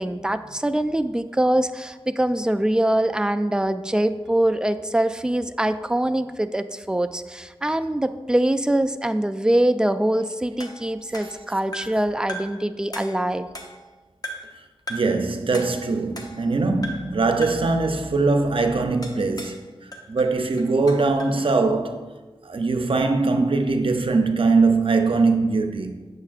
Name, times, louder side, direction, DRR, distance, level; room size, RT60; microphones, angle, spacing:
voice 1, 0.0-13.5, right 1 dB, 10° right, 0.3 m, -23 dB
sound 1, 10.6-12.0 12.3-12.6 12.9-13.9 14.2-14.6 14.9-15.2 15.5-16.5 16.8-17.2 17.4-17.7 19.0-19.6 19.9-21.4, equal, 40° left, 0.9 m, -38 dB
voice 2, 14.9-19.6 20.1-22.2 22.4-26.0, right 3 dB, 65° right, 0.6 m, -21 dB
8.5 x 6.4 x 2.5 m
wide cardioid pair, 65°, 10 cm